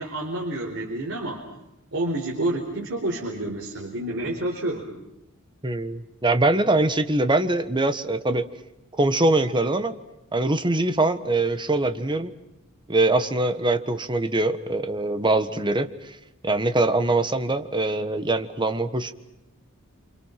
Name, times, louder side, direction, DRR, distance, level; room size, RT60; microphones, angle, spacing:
voice 1, 0.0-1.4 1.9-4.9, right 1 dB, 60° right, -1 dB, 4.5 m, -29 dB
voice 2, 5.6-8.5 9.0-9.9 10.3-12.3 12.9-16.2 16.4-19.1, right 2 dB, 20° right, 9 dB, 1.5 m, -23 dB
29.5 x 27.0 x 5.9 m, 0.87 s
head